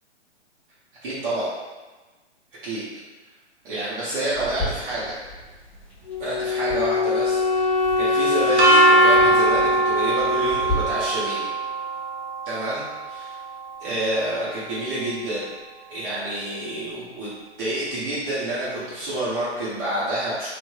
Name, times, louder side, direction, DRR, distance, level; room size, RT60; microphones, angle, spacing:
voice 1, 1.0-1.5 2.6-2.8 3.6-5.1 6.2-11.4 12.4-13.4 13.8-15.5 15.9-17.3 17.6-20.5, right 1 dB, 50° right, -10 dB, 0.9 m, -28 dB
sound 1, 4.3-10.7, left 2 dB, 5° left, 0.9 m, -36 dB
Wind instrument woodwind instrument, 6.1-11.1, left 3 dB, 45° left, 0.5 m, -23 dB
sound 2, 8.6-14.5, right 3 dB, 75° right, 0.8 m, -22 dB
3.2 x 2.5 x 2.3 m, 1.2 s
hypercardioid pair, 130°, 35 cm